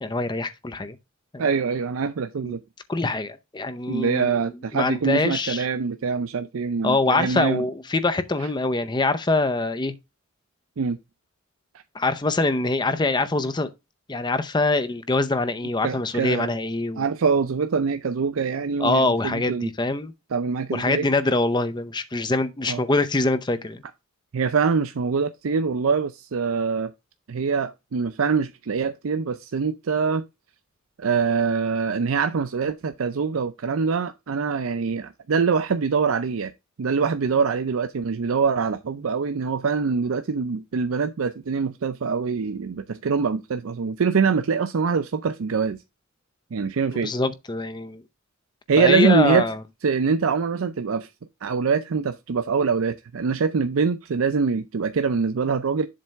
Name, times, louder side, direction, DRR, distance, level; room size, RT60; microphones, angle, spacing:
voice 1, 0.0-1.0 1.3-1.4 2.4-2.6 2.9-4.3 4.7-5.7 6.8-9.9 11.9-13.7 14.1-17.0 18.8-20.1 20.7-23.8 46.9-48.0 48.8-49.6, left 2 dB, 20° left, 0.6 m, -24 dB
voice 2, 1.4-2.6 3.9-7.6 10.8-11.0 15.8-16.5 17.0-19.7 20.3-21.1 22.7-22.8 24.3-26.9 27.3-30.2 31.0-36.5 36.8-45.8 46.5-47.1 48.7-49.4 49.8-51.1 51.4-55.9, right 5 dB, 75° right, 0.5 m, -24 dB
7.5 x 3.4 x 5.3 m
head